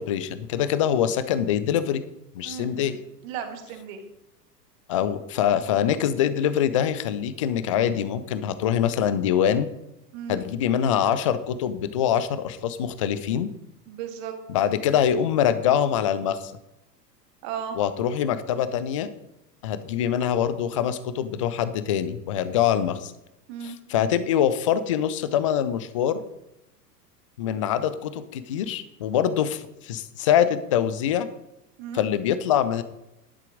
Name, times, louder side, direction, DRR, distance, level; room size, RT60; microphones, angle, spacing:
voice 1, 0.0-2.0 2.3-3.0 4.9-9.7 10.3-13.5 14.5-16.5 17.8-19.1 19.6-23.1 23.6-26.2 27.4-31.3 31.9-32.8, left 9 dB, 25° left, 13 dB, 0.3 m, -24 dB
voice 2, 2.4-2.9 3.2-4.0 10.1-10.4 13.9-14.3 17.4-17.8 23.5-23.8 31.8-32.0, right 8 dB, 40° right, 6 dB, 1.9 m, -35 dB
11.0 x 7.4 x 5.1 m, 0.88 s
figure-of-eight pair, 95°, 49 cm